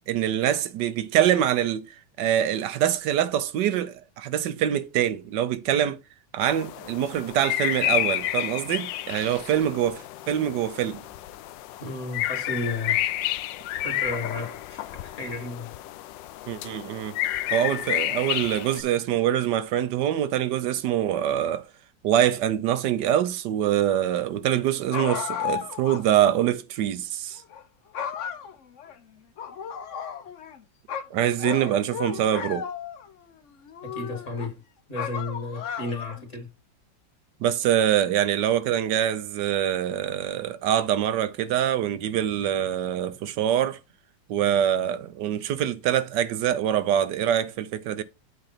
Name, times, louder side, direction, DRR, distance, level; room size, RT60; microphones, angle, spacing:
voice 1, 0.1-6.0 6.3-11.0 16.5-17.2 17.5-21.7 22.0-27.4 31.1-32.7 37.4-43.8 44.3-48.0, right 10 dB, 75° right, 1.2 m, -24 dB
sound 1, 6.4-18.8, left 14 dB, 80° left, 1.2 m, -30 dB
voice 2, 11.8-13.0 13.8-15.7 33.8-34.6 34.9-36.5, left 2 dB, 40° left, 2.5 m, -33 dB
sound 2, 24.9-26.0 26.4-26.5 27.4-27.6 27.9-28.9 29.4-30.6 30.9-33.1 33.6-34.5 34.9-36.3, left 8 dB, 55° left, 0.9 m, -34 dB
7.9 x 3.3 x 5.7 m
omnidirectional pair, 2.0 m